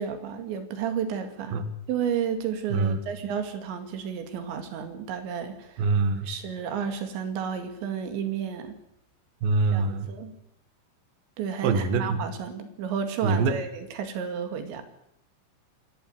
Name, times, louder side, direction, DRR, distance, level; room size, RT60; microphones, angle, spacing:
voice 1, 0.0-1.6 1.9-5.9 6.2-8.8 9.7-10.3 11.4-14.8, right 7 dB, 80° right, 8 dB, 4.4 m, -32 dB
voice 2, 5.8-6.3 9.4-10.1 11.6-12.2 13.2-13.6, right 4 dB, 60° right, 9 dB, 2.9 m, -24 dB
26.0 x 13.0 x 9.3 m, 0.78 s
omnidirectional pair, 5.2 m